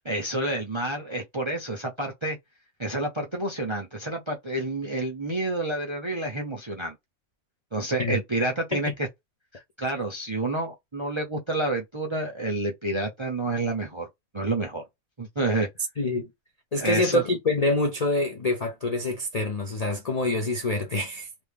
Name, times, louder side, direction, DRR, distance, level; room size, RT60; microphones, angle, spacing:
voice 1, 0.0-2.4 2.8-7.0 7.7-9.1 9.5-14.1 14.3-14.8 15.2-15.7 16.8-17.2, right 2 dB, 35° right, 0.4 m, -29 dB
voice 2, 16.0-16.3 16.7-21.3, left 2 dB, 60° left, 0.4 m, -26 dB
3.1 x 2.3 x 3.4 m
omnidirectional pair, 1.6 m